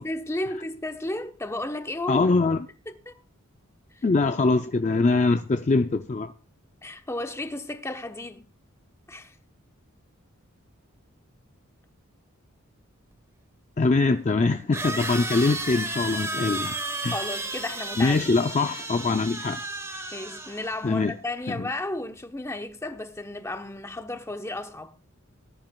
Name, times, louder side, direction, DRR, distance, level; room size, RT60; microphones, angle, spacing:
voice 1, 0.0-2.3 2.9-3.2 3.9-4.0 6.8-8.5 9.1-9.4 17.1-18.4 20.1-24.9, left 1 dB, 15° left, 0.9 m, -33 dB
voice 2, 2.1-2.7 4.0-6.3 13.8-16.8 17.0-17.2 18.0-19.6 20.8-21.1 21.5-21.7, left 3 dB, 35° left, 0.4 m, -23 dB
sound 1, 13.1-13.2 14.7-20.8, right 2 dB, 15° right, 1.9 m, -33 dB
19.5 x 10.5 x 2.3 m
head